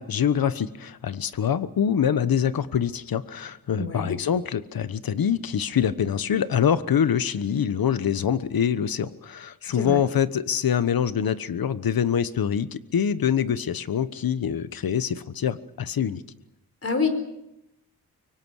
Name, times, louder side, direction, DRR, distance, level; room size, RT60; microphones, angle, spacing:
voice 1, 0.0-16.2, left 8 dB, 70° left, 13 dB, 1.2 m, -25 dB
voice 2, 3.7-4.1 9.7-10.0 16.8-17.1, left 4 dB, 40° left, 8 dB, 4.4 m, -26 dB
24.5 x 24.5 x 6.5 m, 0.88 s
wide cardioid pair, 100°, 36 cm